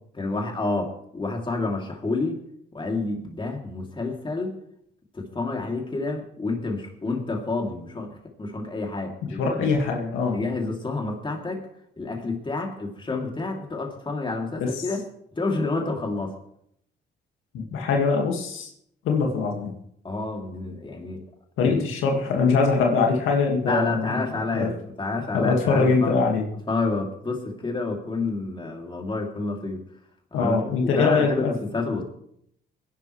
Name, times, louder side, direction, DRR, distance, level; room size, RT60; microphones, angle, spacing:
voice 1, 0.1-2.4 2.7-4.6 5.1-9.7 10.3-11.7 12.0-15.0 15.4-16.4 20.0-21.2 21.6-21.8 23.6-26.2 26.7-29.8 30.3-30.6 30.8-32.0, left 3 dB, 25° left, 1 dB, 2.9 m, -29 dB
voice 2, 9.2-10.4 14.6-14.7 17.5-18.7 19.0-19.7 21.6-24.3 24.5-24.7 25.3-26.5 30.3-31.5, left 4 dB, 90° left, 1 dB, 2.0 m, -22 dB
21.5 x 11.0 x 3.3 m, 0.72 s
cardioid pair, 90°, 20 cm